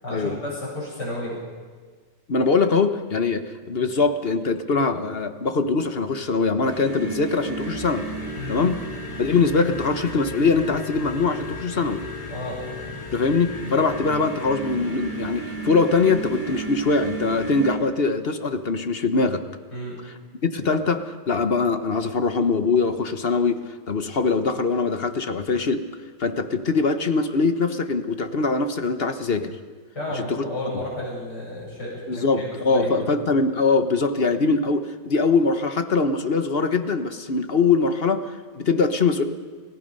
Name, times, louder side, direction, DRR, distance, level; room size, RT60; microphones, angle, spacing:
voice 1, 0.0-1.4 8.4-8.6 12.3-12.6 19.7-20.0 30.0-33.1, left 1 dB, 60° left, -5 dB, 8.7 m, -32 dB
voice 2, 2.3-8.1 8.5-8.8 9.2-12.0 13.1-19.4 20.4-25.8 26.2-29.6 30.1-30.4 32.1-39.2, left 4 dB, 40° left, 8 dB, 1.0 m, -22 dB
sound 1, 6.6-17.8, right 1 dB, 25° left, 3.5 m, -34 dB
29.0 x 17.5 x 5.5 m, 1.5 s
omnidirectional pair, 2.0 m